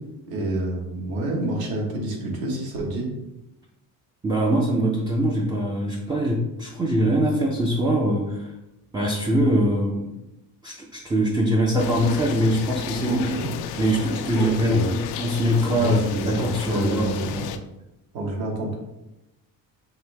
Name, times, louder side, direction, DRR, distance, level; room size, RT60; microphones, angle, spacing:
voice 1, 0.3-3.1 13.0-13.5 14.3-14.9 15.7-17.4 18.1-18.7, right 2 dB, 75° right, -1 dB, 1.4 m, -28 dB
voice 2, 4.2-8.5 8.9-10.1 10.6-13.2 13.8-17.5, equal, 10° right, -1 dB, 0.4 m, -23 dB
sound 1, 11.8-17.6, left 8 dB, 85° left, 0.5 m, -33 dB
5.5 x 2.7 x 3.3 m, 0.92 s
cardioid pair, 150°, 37 cm